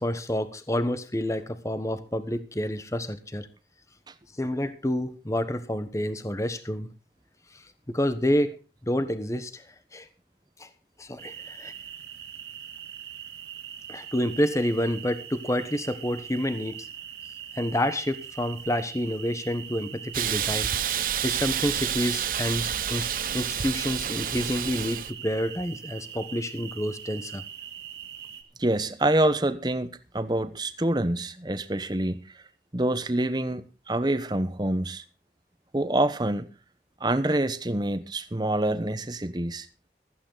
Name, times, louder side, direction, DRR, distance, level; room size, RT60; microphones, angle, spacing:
voice 1, 0.0-3.5 4.4-6.9 7.9-8.6 8.8-9.7 9.9-10.1 10.6-10.7 11.0-11.7 13.9-16.9 17.6-20.7 21.2-27.4, left 1 dB, 15° left, 1.1 m, -28 dB
sound 1, 11.2-28.4, right 9 dB, 75° right, 2.5 m, -42 dB
Hiss, 20.1-25.1, right 9 dB, 50° right, 0.8 m, -29 dB
voice 2, 28.6-32.3 32.7-35.0 35.7-36.5 37.0-39.7, right 1 dB, 25° right, 1.0 m, -26 dB
15.5 x 14.0 x 3.9 m
head